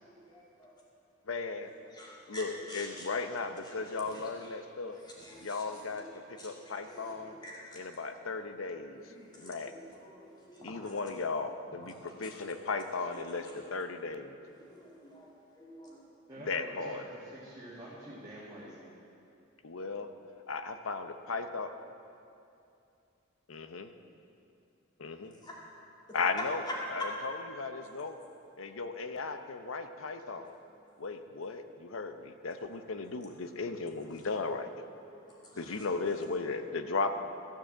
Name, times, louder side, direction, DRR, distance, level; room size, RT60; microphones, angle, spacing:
voice 1, 0.1-0.7 1.9-2.4 2.7-3.1 3.6-4.5 5.0-5.7 5.9-7.8 8.9-10.9 11.9-12.3 14.6-15.3 15.6-16.0 25.4-25.5 26.7-26.8 27.0-27.1 35.1-35.9, left 1 dB, 20° left, -5 dB, 2.4 m, -47 dB
voice 2, 1.3-1.7 2.3-5.0 5.4-7.4 7.7-9.7 10.6-14.4 16.4-17.0 19.6-20.1 20.5-21.7 23.5-23.9 25.0-25.3 26.1-26.6 26.9-28.2 28.6-30.6 31.0-34.9 35.6-37.2, left 4 dB, 80° left, 8 dB, 0.7 m, -36 dB
voice 3, 16.3-18.9, right 1 dB, 20° right, -9 dB, 2.0 m, -47 dB
14.0 x 6.9 x 7.4 m, 2.6 s
head